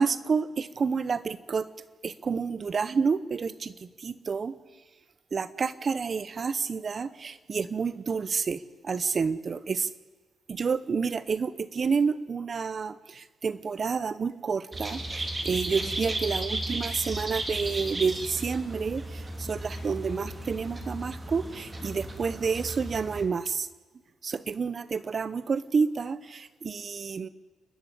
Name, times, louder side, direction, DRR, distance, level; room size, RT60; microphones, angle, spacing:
voice 1, 0.0-1.7 2.0-4.5 5.3-9.9 10.5-23.7 24.2-27.3, right 5 dB, 40° right, 17 dB, 0.9 m, -29 dB
sound 1, 14.7-23.2, right 1 dB, 20° right, 3.2 m, -35 dB
29.5 x 11.5 x 8.6 m, 1.3 s
cardioid pair, 110°, 0 cm